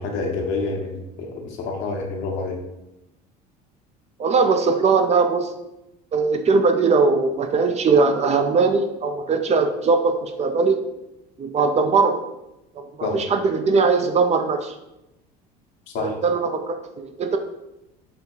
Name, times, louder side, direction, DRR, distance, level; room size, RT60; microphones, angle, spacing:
voice 1, 0.0-2.6 13.0-13.2 15.9-16.2, left 3 dB, 60° left, 1 dB, 1.1 m, -28 dB
voice 2, 4.2-5.5 6.1-10.8 11.4-12.1 12.8-14.7 16.0-17.4, right 4 dB, 30° right, 6 dB, 0.5 m, -20 dB
5.1 x 2.2 x 4.4 m, 0.93 s
hypercardioid pair, 80°, 21 cm